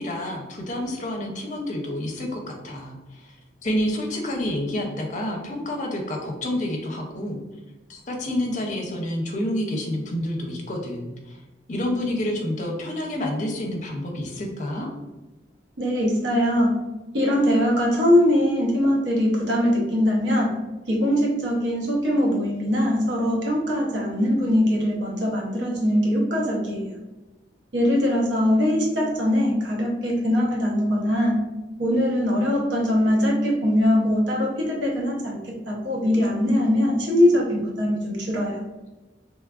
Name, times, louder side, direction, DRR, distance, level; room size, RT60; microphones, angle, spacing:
voice 1, 0.0-3.3 3.6-7.4 7.9-11.4 11.7-14.9, left 1 dB, 45° left, 2 dB, 0.5 m, -28 dB
voice 2, 15.8-16.7 17.1-20.5 20.9-26.9 27.7-31.3 31.8-38.6, left 1 dB, 85° right, -2 dB, 0.8 m, -22 dB
3.1 x 2.4 x 2.3 m, 1.1 s
head